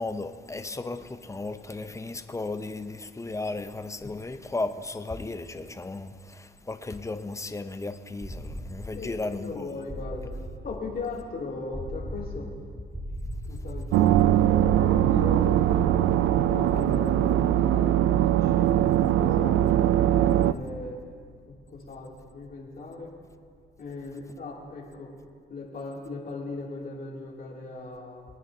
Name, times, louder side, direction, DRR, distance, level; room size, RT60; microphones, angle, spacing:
voice 1, 0.0-9.6, left 2 dB, 15° left, 0.7 m, -35 dB
sound 1, 8.2-24.0, equal, 15° right, 1.9 m, -40 dB
voice 2, 8.9-10.3 10.6-12.5 13.4-16.1 16.5-19.6 20.1-21.0 21.5-23.1 23.8-25.1 25.5-28.2, left 3 dB, 45° left, 2.8 m, -38 dB
sound 2, 13.9-20.5, right 12 dB, 85° right, 0.4 m, -21 dB
23.0 x 9.2 x 2.8 m
cardioid pair, 90°, 20 cm